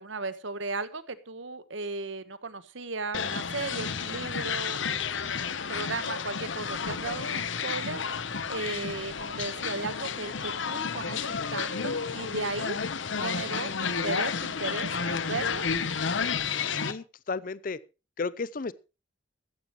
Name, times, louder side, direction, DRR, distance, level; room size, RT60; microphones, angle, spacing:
voice 1, 0.0-4.8 5.7-8.0 8.5-12.8 13.1-15.6, right 3 dB, 75° right, 1.2 m, -36 dB
sound 1, 3.1-16.9, left 6 dB, 75° left, 1.0 m, -31 dB
voice 2, 16.7-17.8 18.2-18.7, left 4 dB, 45° left, 0.5 m, -33 dB
15.0 x 14.0 x 3.1 m
head